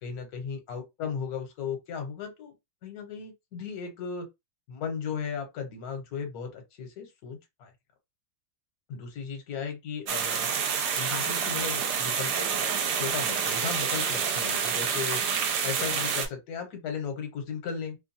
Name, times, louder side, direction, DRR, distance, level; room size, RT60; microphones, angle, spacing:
voice 1, 0.0-2.6 2.8-4.3 4.7-7.7 8.9-10.5 11.0-15.2 15.6-18.0, left 6 dB, 65° left, 1.3 m, -36 dB
sound 1, 10.1-16.3, right 7 dB, 80° right, 1.2 m, -28 dB
3.0 x 2.2 x 2.6 m
omnidirectional pair, 1.8 m